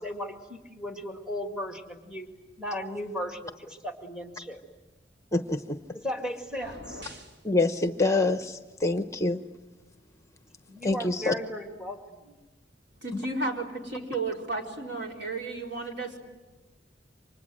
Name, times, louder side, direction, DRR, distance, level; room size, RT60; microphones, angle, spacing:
voice 1, 0.0-2.3 2.6-4.6 5.9-7.0 10.7-12.3, equal, 5° right, 4 dB, 2.2 m, -36 dB
voice 2, 5.3-5.8 7.4-9.4 10.8-11.3, left 2 dB, 15° left, 8 dB, 0.9 m, -26 dB
sound 1, 6.5-7.4, equal, 90° right, 3.4 m, -44 dB
voice 3, 13.0-16.2, right 3 dB, 65° right, 0 dB, 4.6 m, -33 dB
29.5 x 25.5 x 7.7 m, 1.1 s
head